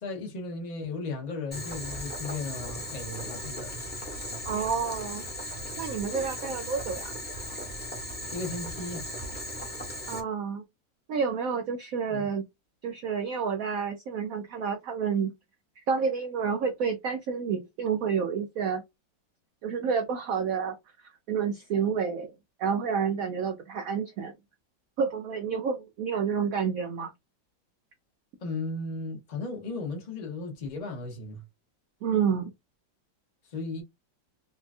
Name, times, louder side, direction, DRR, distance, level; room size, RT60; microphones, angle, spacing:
voice 1, 0.0-3.9 8.3-9.1 12.1-12.3 28.4-31.4 33.5-33.8, left 3 dB, 70° left, 0.4 m, -35 dB
Boiling, 1.5-10.2, equal, 10° left, 0.6 m, -37 dB
voice 2, 4.5-5.2 5.8-7.1 10.1-10.6 11.1-12.4 12.8-15.3 15.9-18.8 19.6-20.8 21.3-22.3 22.6-24.3 25.0-27.1 32.0-32.5, right 6 dB, 85° right, 0.7 m, -29 dB
4.2 x 2.3 x 2.4 m
omnidirectional pair, 2.1 m